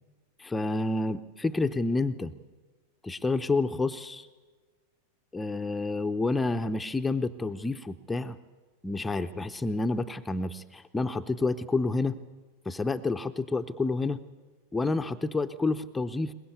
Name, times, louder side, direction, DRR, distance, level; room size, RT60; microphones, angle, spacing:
voice 1, 0.4-2.3 3.0-4.3 5.3-8.4 8.8-12.2 12.7-14.2 14.7-16.3, left 3 dB, 10° left, 8 dB, 0.7 m, -29 dB
22.5 x 21.0 x 8.3 m, 1.3 s
figure-of-eight pair, 90°, 0 cm